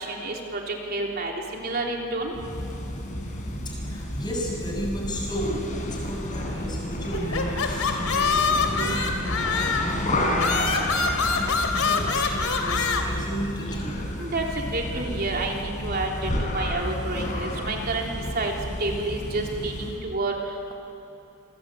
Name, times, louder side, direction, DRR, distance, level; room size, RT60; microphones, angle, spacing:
voice 1, 0.0-2.3 14.2-18.5 18.8-20.7, right 2 dB, 45° right, 0 dB, 3.4 m, -29 dB
sound 1, 2.3-20.0, left 1 dB, 35° left, 4.4 m, -31 dB
voice 2, 3.6-10.8 11.2-13.9, equal, 20° left, -1 dB, 6.7 m, -33 dB
sound 2, 7.1-10.0 10.4-13.0, left 5 dB, 75° left, 3.0 m, -25 dB
28.0 x 20.5 x 8.8 m, 3.0 s
head